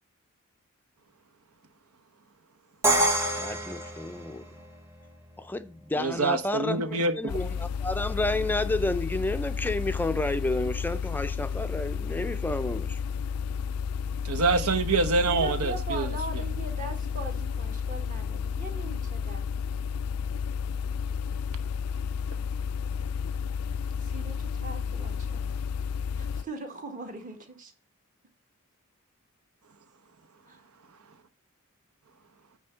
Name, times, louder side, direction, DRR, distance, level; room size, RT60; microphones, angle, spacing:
Crash cymbal, 2.8-4.8, right 1 dB, 10° right, 1.0 m, -26 dB
voice 1, 2.9-4.5 5.4-13.0, left 2 dB, 10° left, 0.4 m, -31 dB
voice 2, 6.0-7.2 14.2-16.1, right 3 dB, 80° right, 0.9 m, -25 dB
sound 1, 7.3-26.4, left 6 dB, 80° left, 0.4 m, -32 dB
voice 3, 15.3-19.5 24.0-25.4 26.2-27.7 30.5-30.6, right 3 dB, 35° right, 1.6 m, -40 dB
9.3 x 3.3 x 6.6 m
head